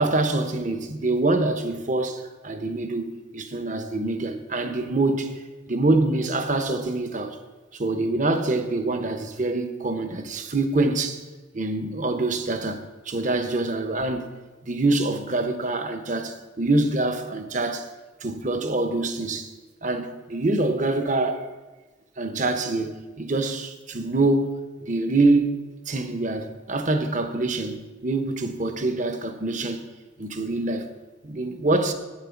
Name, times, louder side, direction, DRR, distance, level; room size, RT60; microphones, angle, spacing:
voice 1, 0.0-5.4 5.7-7.4 7.7-11.2 11.5-14.3 14.6-17.8 18.2-19.5 19.8-21.5 22.2-25.6 25.9-29.9 30.2-30.9 31.2-31.9, right 2 dB, 40° right, 0.9 m, -25 dB
9.0 x 8.9 x 7.1 m
head